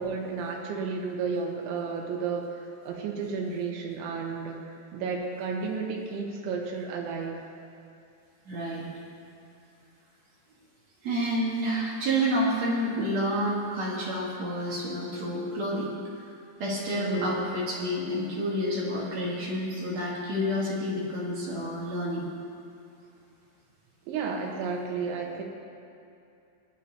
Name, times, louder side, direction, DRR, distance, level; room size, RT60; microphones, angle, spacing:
voice 1, 0.0-4.6 4.9-7.4 16.9-17.4 24.1-25.4, right 5 dB, 85° right, 0 dB, 3.5 m, -32 dB
voice 2, 8.5-8.9 11.0-15.9 16.6-22.3, equal, 65° right, -5 dB, 1.8 m, -29 dB
20.0 x 10.0 x 2.8 m, 2.6 s
omnidirectional pair, 5.3 m